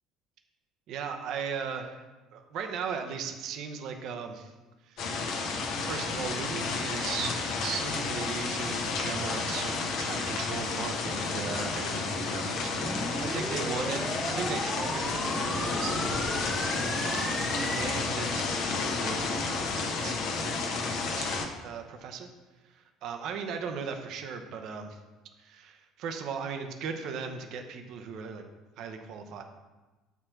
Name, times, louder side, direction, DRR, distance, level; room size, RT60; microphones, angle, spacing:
voice 1, 0.9-2.1 2.3-4.5 4.8-5.1 5.8-16.0 17.0-22.3 22.6-25.0 25.4-28.4 28.8-29.4, right 6 dB, 50° right, 5 dB, 0.8 m, -38 dB
sound 1, 5.0-21.5, left 4 dB, 50° left, 0.9 m, -31 dB
sound 2, 12.8-17.8, right 1 dB, 5° right, 0.3 m, -37 dB
8.3 x 4.3 x 5.8 m, 1.2 s
figure-of-eight pair, 60°, 0 cm